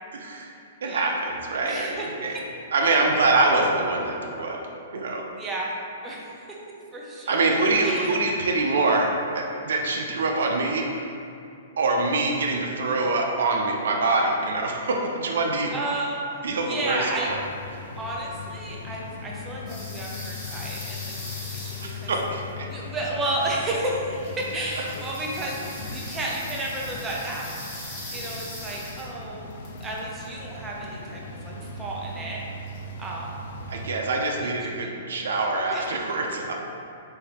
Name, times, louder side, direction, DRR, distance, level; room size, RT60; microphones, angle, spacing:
voice 1, 0.1-0.5 0.8-2.4 2.7-4.6 4.9-5.3 7.3-11.1 11.8-15.7 16.4-17.4 21.8-22.7 33.7-36.5, right 3 dB, 80° right, 1 dB, 0.5 m, -25 dB
voice 2, 1.6-2.1 5.4-5.7 6.0-6.3 6.9-7.4 7.8-8.2 15.7-17.3 18.0-22.1 22.7-27.7 28.1-29.5 29.8-32.4 33.0-33.3 34.4-34.5 34.8-34.9 35.7-35.8, right 2 dB, 15° right, -3 dB, 0.6 m, -32 dB
sound 1, 17.3-33.9, left 3 dB, 60° left, 0.3 m, -39 dB
sound 2, 19.7-22.7 23.2-23.9 24.1-29.2 29.5-30.3 32.7-33.1, left 1 dB, 25° left, 1.1 m, -40 dB
4.4 x 2.7 x 3.4 m, 2.6 s
hypercardioid pair, 155°, 0 cm